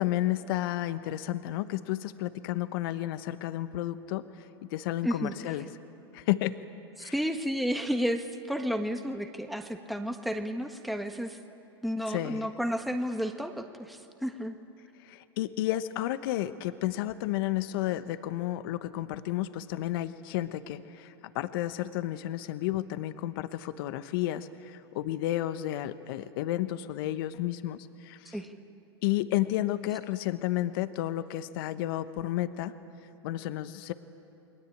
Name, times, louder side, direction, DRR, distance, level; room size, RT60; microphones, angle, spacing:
voice 1, 0.0-5.7 6.1-6.6 7.0-7.1 12.1-12.5 15.0-28.4 29.0-32.7 33.2-33.9, left 14 dB, 60° left, 12 dB, 1.1 m, -32 dB
voice 2, 5.0-5.3 7.0-11.4 11.8-14.6 28.3-28.5, equal, ahead, 5 dB, 1.5 m, -32 dB
29.5 x 22.0 x 8.6 m, 2.8 s
hypercardioid pair, 100°, 14 cm